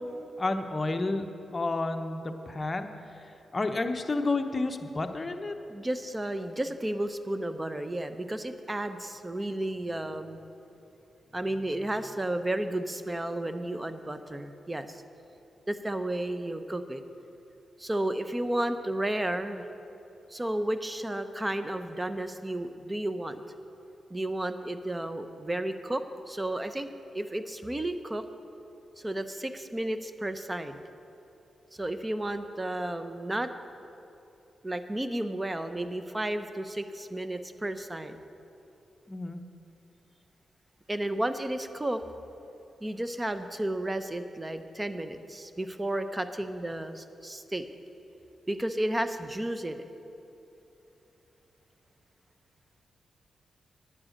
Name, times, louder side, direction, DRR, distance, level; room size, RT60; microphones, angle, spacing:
voice 1, 0.4-1.3 1.5-5.5 39.1-39.4, left 2 dB, 30° left, 6 dB, 0.8 m, -31 dB
voice 2, 5.7-10.4 11.3-15.0 15.7-17.0 17.8-19.7 20.3-23.4 24.1-26.9 27.1-28.2 29.0-30.8 31.7-33.5 34.6-38.2 40.9-42.0 42.8-47.6 48.5-49.8, right 1 dB, 20° right, 10 dB, 0.7 m, -32 dB
9.9 x 9.6 x 6.5 m, 2.9 s
cardioid pair, 65°, 0 cm